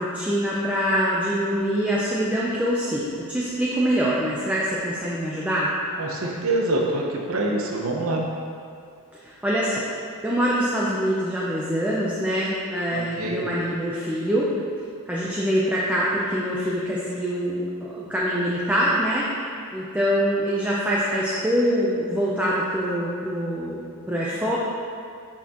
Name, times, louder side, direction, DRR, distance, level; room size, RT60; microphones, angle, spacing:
voice 1, 0.0-5.7 9.2-9.8 10.2-14.5 15.1-19.3 19.7-23.8 24.1-24.6, equal, 5° right, -7 dB, 0.5 m, -24 dB
voice 2, 6.0-8.2 12.9-13.4, right 2 dB, 70° right, -1 dB, 0.8 m, -25 dB
6.3 x 5.8 x 3.0 m, 2.3 s
head